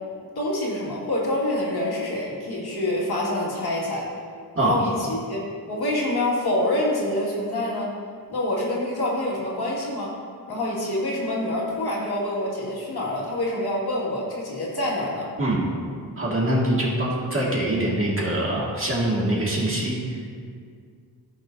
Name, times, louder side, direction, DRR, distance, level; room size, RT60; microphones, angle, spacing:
voice 1, 0.4-4.1 4.6-5.4 5.7-7.9 8.3-10.1 10.5-15.3, left 1 dB, 70° left, -5 dB, 2.1 m, -26 dB
voice 2, 15.4-15.7 16.2-20.0, right 1 dB, 35° right, -5 dB, 2.1 m, -23 dB
15.0 x 6.4 x 2.7 m, 2.1 s
wide cardioid pair, 130°, 39 cm